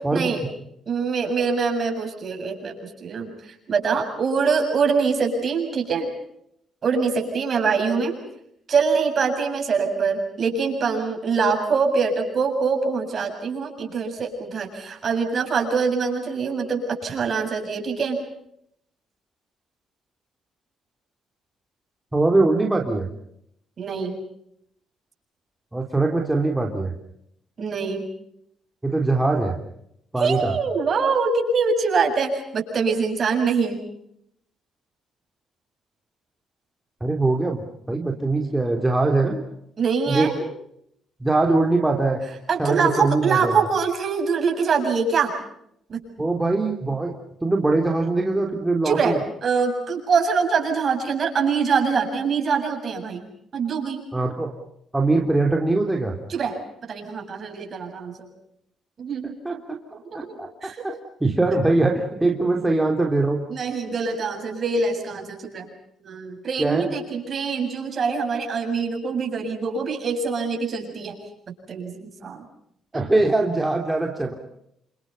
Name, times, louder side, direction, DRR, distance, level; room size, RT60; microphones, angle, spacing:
voice 1, 0.9-6.1 6.8-8.2 8.7-18.2 23.8-24.2 27.6-28.1 30.2-33.8 39.8-40.4 42.5-45.3 45.9-46.0 48.8-53.2 53.5-54.0 56.3-58.3 59.0-59.6 59.9-60.3 60.6-60.9 63.5-65.7 66.0-71.2 71.7-72.4 72.9-73.0, right 5 dB, 50° right, 3 dB, 7.7 m, -24 dB
voice 2, 22.1-23.1 25.7-26.9 28.8-29.6 30.1-30.5 37.0-39.4 40.1-40.3 41.2-42.2 42.6-43.6 46.2-47.2 47.4-49.2 54.1-54.5 54.9-56.2 59.4-59.6 59.9-63.4 66.6-66.9 72.9-74.3, right 2 dB, 10° right, 2 dB, 3.4 m, -22 dB
29.0 x 27.5 x 5.6 m, 0.74 s
cardioid pair, 90°, 0 cm